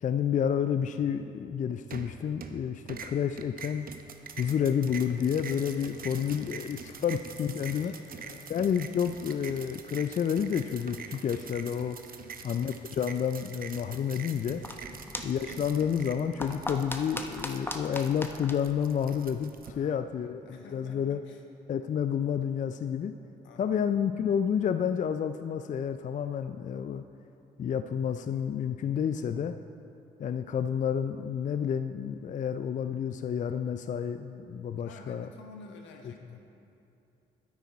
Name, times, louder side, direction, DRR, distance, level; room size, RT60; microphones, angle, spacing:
voice 1, 0.0-3.9 4.4-7.9 8.5-12.0 12.4-14.6 15.2-21.2 21.7-23.1 23.6-27.0 27.6-29.6 30.2-35.3, left 8 dB, 40° left, 9 dB, 0.4 m, -30 dB
sound 1, 1.9-2.6 2.9-19.7, right 6 dB, 50° right, 0.8 m, -44 dB
voice 2, 5.9-6.3 6.8-7.2 7.7-8.7 12.2-12.5 14.8-15.1 19.6-21.4 23.4-24.0 34.8-36.5, left 3 dB, 75° left, 3 dB, 1.2 m, -52 dB
sound 2, 14.5-19.7, left 1 dB, 10° left, 1.0 m, -40 dB
9.5 x 9.2 x 4.2 m, 2.8 s
hypercardioid pair, 50°, 19 cm